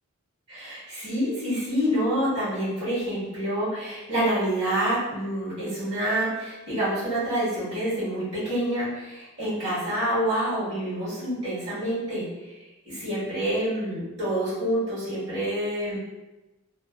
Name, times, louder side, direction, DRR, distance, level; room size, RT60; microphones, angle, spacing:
voice 1, 0.5-16.0, right 1 dB, 60° right, -11 dB, 1.3 m, -27 dB
2.7 x 2.1 x 2.2 m, 1.1 s
head